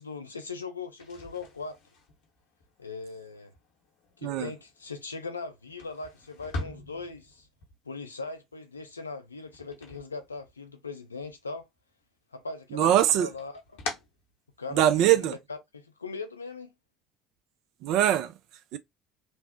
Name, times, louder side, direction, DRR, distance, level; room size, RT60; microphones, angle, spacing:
voice 1, 0.0-1.8 2.8-3.5 4.2-7.4 7.9-11.7 12.3-13.6 14.6-16.7, left 4 dB, 85° left, 0.4 m, -39 dB
sound 1, 0.9-10.9 11.2-12.0 12.4-15.0, left 3 dB, 60° left, 0.8 m, -44 dB
voice 2, 12.7-13.3 14.7-15.3 17.8-18.3 18.7-18.8, right 11 dB, 55° right, 0.3 m, -22 dB
3.1 x 2.0 x 2.6 m
figure-of-eight pair, 60°, 0 cm